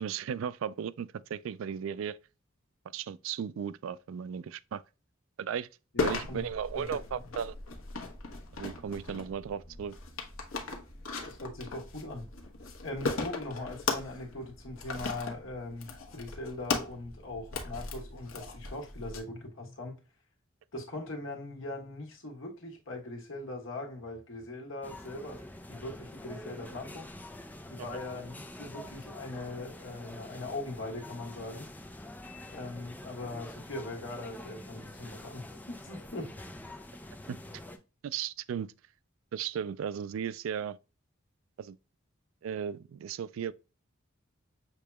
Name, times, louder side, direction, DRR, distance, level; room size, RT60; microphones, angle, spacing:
voice 1, 0.0-2.2 2.9-4.8 5.4-5.7 6.0-7.6 8.6-10.0 37.3-37.4 38.0-38.7 39.3-40.8 41.6-41.8 42.4-43.5, right 8 dB, 75° right, 0.3 m, -35 dB
voice 2, 5.9-6.5 6.7-6.9 7.2-7.3 11.2-12.3 12.8-20.0 20.7-25.4 25.7-27.1 27.7-31.7 32.5-36.6, left 2 dB, 70° left, 1.4 m, -41 dB
sound 1, 6.0-19.2, left 4 dB, 85° left, 1.0 m, -38 dB
sound 2, 24.8-37.8, left 1 dB, 10° left, 0.4 m, -46 dB
6.6 x 2.9 x 2.2 m
head